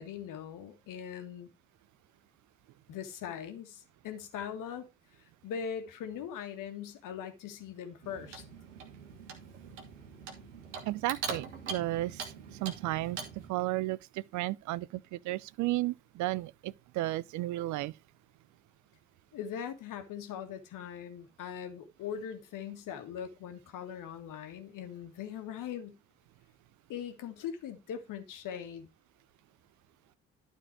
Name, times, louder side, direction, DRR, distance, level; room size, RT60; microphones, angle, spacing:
voice 1, 0.0-1.5 2.9-4.9 5.4-8.5 19.3-26.0 26.9-28.9, left 8 dB, 60° left, 1.7 m, -41 dB
Clock, 8.0-13.5, right 5 dB, 80° right, 1.5 m, -42 dB
voice 2, 10.9-17.9, right 17 dB, 55° right, 0.5 m, -34 dB
12.0 x 4.5 x 4.6 m
figure-of-eight pair, 40°, 36 cm